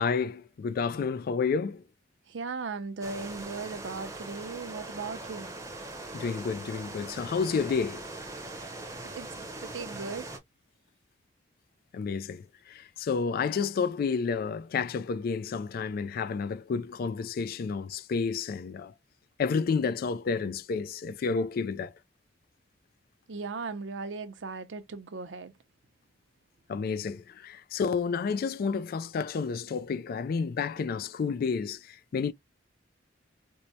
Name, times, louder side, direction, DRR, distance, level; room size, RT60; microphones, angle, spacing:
voice 1, 0.0-1.8 6.1-8.0 11.9-18.9 19.4-21.9 26.7-32.3, left 5 dB, 50° left, 0.3 m, -30 dB
voice 2, 2.3-5.5 9.1-10.3 23.3-25.5, right 4 dB, 75° right, 0.5 m, -37 dB
sound 1, 3.0-10.4, right 2 dB, 15° right, 0.7 m, -41 dB
4.5 x 2.1 x 2.6 m
head